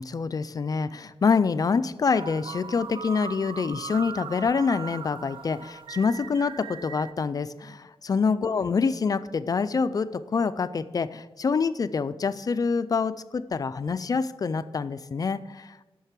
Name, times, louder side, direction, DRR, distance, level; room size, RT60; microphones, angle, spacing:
voice 1, 0.0-15.8, left 5 dB, 40° left, 13 dB, 0.4 m, -26 dB
sound 1, 2.1-7.1, right 6 dB, 65° right, 0.4 m, -39 dB
10.0 x 6.6 x 8.2 m, 1.1 s
wide cardioid pair, 175°, 10 cm